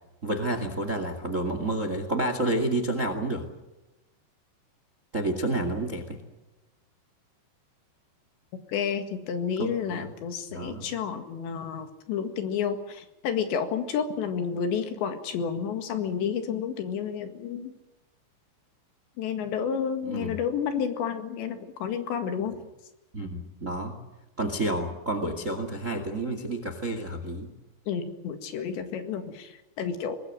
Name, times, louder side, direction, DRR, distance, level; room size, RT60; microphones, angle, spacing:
voice 1, 0.2-3.4 5.1-6.2 9.6-10.0 10.5-10.9 20.0-20.3 23.1-23.9 24.4-27.5, right 1 dB, 30° right, 9 dB, 1.4 m, -29 dB
voice 2, 8.7-17.7 19.2-22.5 27.9-30.2, left 7 dB, 75° left, 7 dB, 4.1 m, -30 dB
24.5 x 20.0 x 7.8 m, 1.0 s
omnidirectional pair, 5.2 m